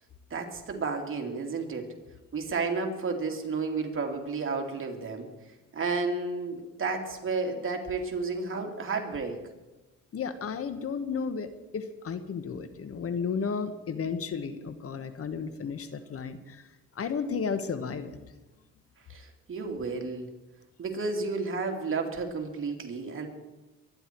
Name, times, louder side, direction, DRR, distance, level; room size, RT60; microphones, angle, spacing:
voice 1, 0.3-1.9 2.3-5.3 5.7-9.4 19.1-20.3 20.8-23.3, right 4 dB, 45° right, 2 dB, 2.8 m, -32 dB
voice 2, 10.1-16.7 16.9-18.3, left 5 dB, 50° left, 11 dB, 1.3 m, -33 dB
23.5 x 10.5 x 4.6 m, 1.1 s
cardioid pair, 90°, 30 cm